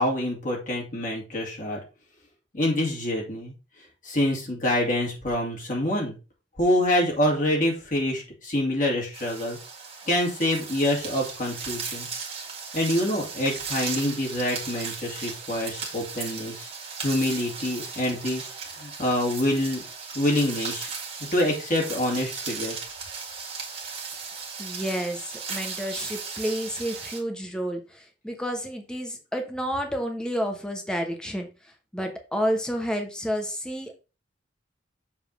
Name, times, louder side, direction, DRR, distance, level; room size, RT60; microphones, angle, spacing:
voice 1, 0.0-1.8 2.5-3.5 4.0-6.1 6.6-9.6 10.1-12.1 12.7-16.7 17.0-18.4 18.7-19.8 20.1-20.9 21.3-22.7, left 1 dB, 45° left, -2 dB, 2.5 m, -26 dB
sound 1, 9.1-27.2, right 5 dB, 35° right, 1.8 m, -36 dB
voice 2, 24.6-31.5 31.9-34.0, equal, 5° left, 3 dB, 1.1 m, -30 dB
7.2 x 3.7 x 4.8 m, 0.31 s
head